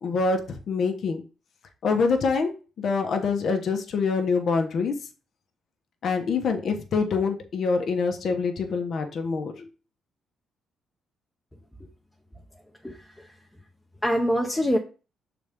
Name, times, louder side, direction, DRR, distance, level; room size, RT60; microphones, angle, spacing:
voice 1, 0.0-1.2 1.8-4.9 6.0-9.7, left 4 dB, 60° left, 5 dB, 1.1 m, -25 dB
voice 2, 12.8-13.3 14.0-14.8, equal, 10° left, 1 dB, 0.9 m, -25 dB
6.6 x 4.0 x 3.6 m, 0.34 s
cardioid pair, 90°, 0 cm